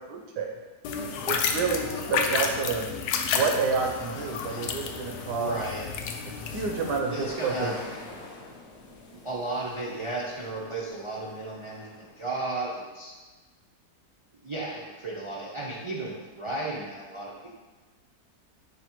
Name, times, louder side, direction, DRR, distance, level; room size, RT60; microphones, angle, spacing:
voice 1, 0.1-0.5 1.2-2.9 3.3-5.6 6.4-7.7, right 4 dB, 80° right, 2 dB, 1.3 m, -29 dB
sound 1, 0.8-7.0, left 6 dB, 75° left, 1.1 m, -31 dB
sound 2, 3.3-12.4, left 3 dB, 50° left, 0.9 m, -47 dB
voice 2, 5.4-5.9 7.1-8.0 9.2-13.1 14.4-17.5, right 2 dB, 50° right, -6 dB, 0.3 m, -34 dB
6.0 x 3.5 x 4.5 m, 1.3 s
omnidirectional pair, 1.8 m